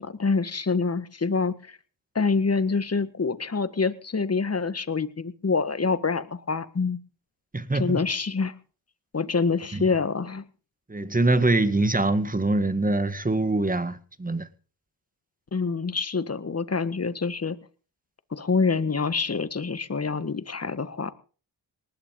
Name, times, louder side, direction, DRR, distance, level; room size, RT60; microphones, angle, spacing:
voice 1, 0.0-1.8 2.1-7.0 7.7-8.5 9.1-10.4 15.5-17.6 18.3-21.1, left 4 dB, 30° left, 1.6 m, -26 dB
voice 2, 7.5-8.0 9.7-9.8 10.9-14.5, right 2 dB, 20° right, 2.0 m, -24 dB
19.0 x 11.5 x 5.4 m
supercardioid pair, 50°, 46 cm